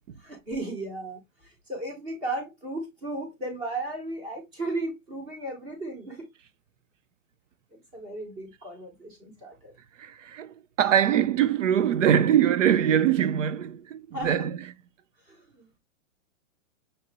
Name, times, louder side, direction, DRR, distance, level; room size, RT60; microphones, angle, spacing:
voice 1, 0.2-6.3 7.7-9.7 14.1-14.5 15.3-15.7, right 2 dB, 15° right, 1.0 m, -35 dB
voice 2, 10.0-14.6, right 9 dB, 70° right, 0.5 m, -23 dB
6.6 x 2.6 x 2.7 m
hypercardioid pair, 180°, 38 cm